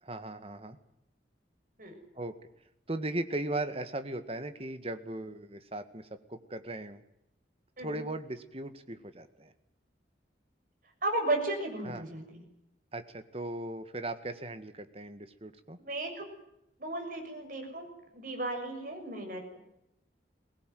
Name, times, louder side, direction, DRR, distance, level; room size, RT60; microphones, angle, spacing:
voice 1, 0.0-0.8 2.2-2.3 2.9-7.0 7.8-9.5 11.8-12.0 12.9-15.8, right 2 dB, 30° right, 10 dB, 1.9 m, -38 dB
voice 2, 11.0-12.4 15.8-16.3 16.8-17.9 18.1-19.6, right 2 dB, 50° right, 4 dB, 6.6 m, -34 dB
22.5 x 19.5 x 9.4 m, 0.82 s
head